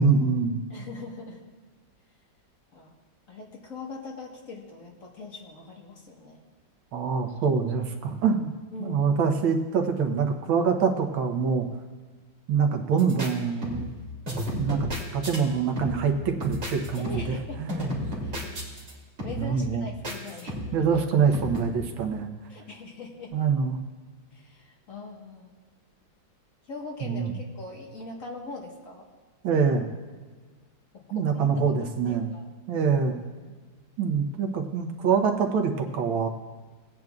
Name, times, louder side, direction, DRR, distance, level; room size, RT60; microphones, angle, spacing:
voice 1, 0.0-0.6 6.9-8.5 8.8-11.7 12.5-13.9 14.5-14.9 15.1-17.8 19.4-19.9 20.7-22.3 23.3-23.8 27.0-27.3 29.4-29.9 31.1-32.3 32.7-33.2 34.0-36.3, right 6 dB, 85° right, 5 dB, 1.8 m, -25 dB
voice 2, 0.7-1.4 2.7-2.9 3.3-6.4 8.7-9.3 14.5-14.7 17.0-17.6 18.2-18.4 19.2-20.6 22.5-23.3 24.3-25.5 26.7-29.1 29.5-29.7 30.9-31.8 32.1-32.5 32.7-33.0 33.5-33.6, left 3 dB, 45° left, -1 dB, 1.7 m, -42 dB
sound 1, 13.0-13.3 13.6-14.0 14.3-15.4 15.8-16.1 16.4-17.4 17.7-18.9 19.2-19.6 20.0-20.9 21.3-21.6, equal, 35° right, 2.8 m, -33 dB
18.5 x 9.1 x 2.4 m, 1.4 s
omnidirectional pair, 2.1 m